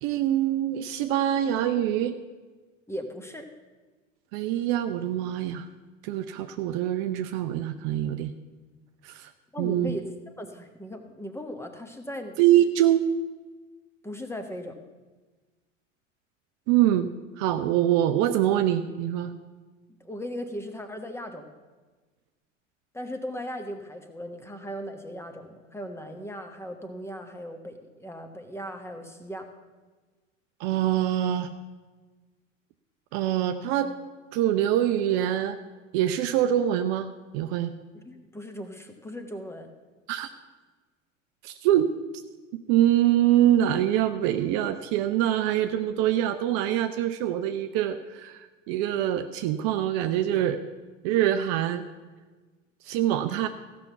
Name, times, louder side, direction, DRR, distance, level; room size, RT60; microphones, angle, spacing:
voice 1, 0.0-2.2 4.3-5.7 6.0-8.3 9.0-9.3 9.6-9.9 12.4-13.0 16.7-17.1 17.4-19.3 30.6-31.5 33.1-33.9 34.3-35.6 35.9-37.1 37.3-37.7 40.1-40.3 41.4-41.9 42.5-50.6 51.0-51.8 52.8-53.5, right 12 dB, 45° right, 8 dB, 0.6 m, -24 dB
voice 2, 2.9-3.5 9.5-10.0 10.4-12.4 14.0-14.8 20.0-21.5 22.9-29.5 37.9-39.7, equal, 5° left, 6 dB, 1.2 m, -38 dB
15.0 x 6.0 x 6.9 m, 1.3 s
figure-of-eight pair, 75°, 38 cm